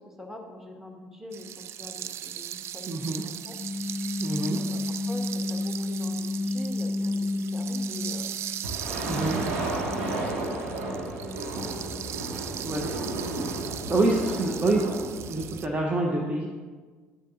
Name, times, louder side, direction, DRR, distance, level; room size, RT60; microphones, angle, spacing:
voice 1, 0.0-3.6 4.5-4.8 5.1-8.3 8.8-9.4 9.8-11.9 14.0-14.4, left 1 dB, 5° right, 0 dB, 2.0 m, -44 dB
sound 1, 1.3-15.7, right 10 dB, 50° right, 0.4 m, -39 dB
voice 2, 2.9-3.2 4.2-4.6 9.1-9.4 12.6-12.9 13.9-14.8 15.3-16.5, right 2 dB, 25° right, 0 dB, 1.1 m, -26 dB
sound 2, 3.4-8.7 9.0-15.3, left 2 dB, 45° left, 0.5 m, -34 dB
sound 3, 8.6-15.6, right 2 dB, 80° right, 2.0 m, -32 dB
11.5 x 10.0 x 2.7 m, 1.4 s
hypercardioid pair, 60°, 6 cm